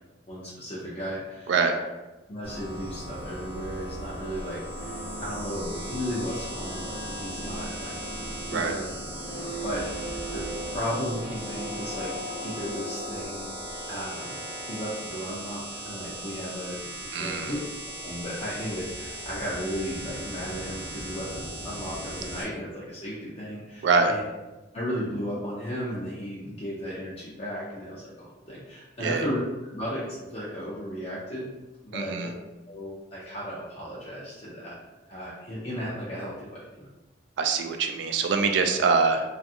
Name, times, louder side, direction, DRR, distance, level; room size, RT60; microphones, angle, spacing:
voice 1, 0.3-1.5 2.3-8.1 8.5-8.9 9.3-10.4 10.7-12.1 12.4-13.5 13.9-16.8 17.2-17.6 18.0-24.2 24.7-29.4 29.7-31.5 31.8-32.3 32.7-34.8 35.1-36.9, equal, 30° left, -7 dB, 0.4 m, -35 dB
voice 2, 1.5-1.8 8.5-8.8 17.1-17.5 23.8-24.1 29.0-29.3 31.9-32.3 37.4-39.3, right 4 dB, 65° right, 5 dB, 0.3 m, -24 dB
sound 1, 2.4-22.4, right 1 dB, 30° right, 0.6 m, -38 dB
sound 2, 4.7-13.3, right 1 dB, 50° left, 0.9 m, -40 dB
2.5 x 2.4 x 2.6 m, 1.1 s
head